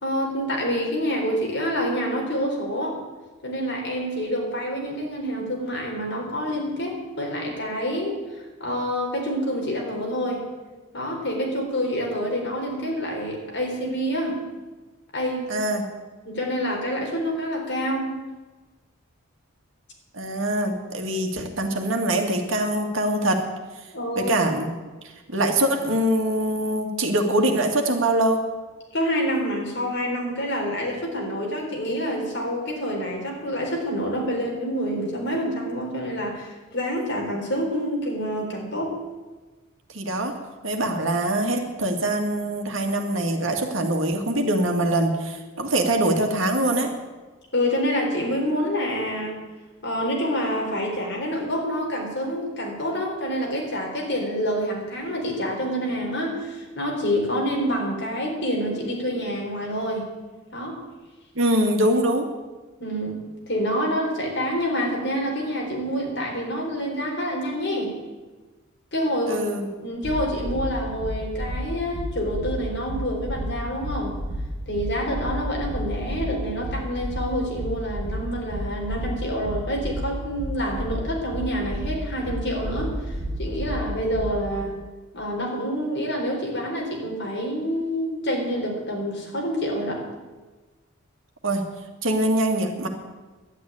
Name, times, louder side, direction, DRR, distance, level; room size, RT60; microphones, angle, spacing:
voice 1, 0.0-3.0 3.4-10.4 10.9-14.4 15.1-15.5 16.2-18.1 23.9-24.3 28.9-39.0 47.5-49.4 49.8-60.0 60.5-60.8 62.8-67.9 68.9-69.4 69.8-74.2 74.7-84.8 85.1-90.0, equal, 55° left, -1 dB, 4.0 m, -27 dB
voice 2, 15.5-15.9 20.1-23.5 24.2-24.7 25.0-28.4 39.9-40.3 40.6-46.9 61.4-62.3 69.3-69.7 91.4-91.7 92.0-92.9, right 1 dB, 65° right, 4 dB, 2.0 m, -23 dB
sound 1, 70.0-84.5, equal, 45° right, 2.0 m, -31 dB
11.5 x 9.5 x 9.8 m, 1.3 s
head